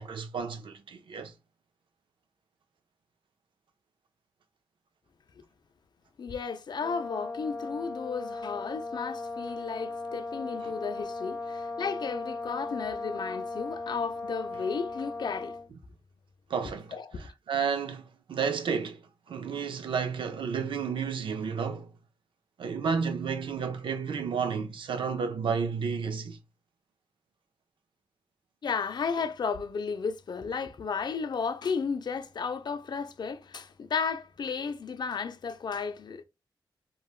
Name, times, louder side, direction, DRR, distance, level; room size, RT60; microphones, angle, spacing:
voice 1, 0.0-1.3 10.6-10.7 16.5-21.9 22.6-26.4, right 6 dB, 75° right, 0.5 m, -32 dB
voice 2, 6.2-15.6 16.9-17.3 28.6-36.2, left 5 dB, 55° left, 0.4 m, -33 dB
Brass instrument, 6.8-15.7, left 3 dB, 5° left, 0.7 m, -37 dB
3.1 x 2.2 x 2.3 m
cardioid pair, 85°, 9 cm